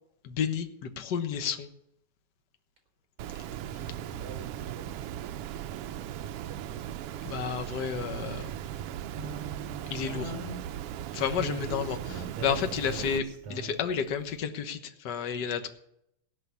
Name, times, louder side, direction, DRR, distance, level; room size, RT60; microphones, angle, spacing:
voice 1, 0.2-1.7 7.2-8.5 9.9-10.3 11.1-13.2 13.5-15.7, left 7 dB, 55° left, 8 dB, 1.2 m, -31 dB
Water, 3.2-13.2, right 11 dB, 85° right, 1.3 m, -38 dB
voice 2, 3.5-5.1 6.5-6.9 11.5-11.8, right 5 dB, 50° right, 2 dB, 4.6 m, -47 dB
sound 1, 9.2-10.9 11.3-13.9, right 4 dB, 65° right, 3.4 m, -40 dB
17.5 x 5.9 x 9.6 m, 0.76 s
omnidirectional pair, 3.4 m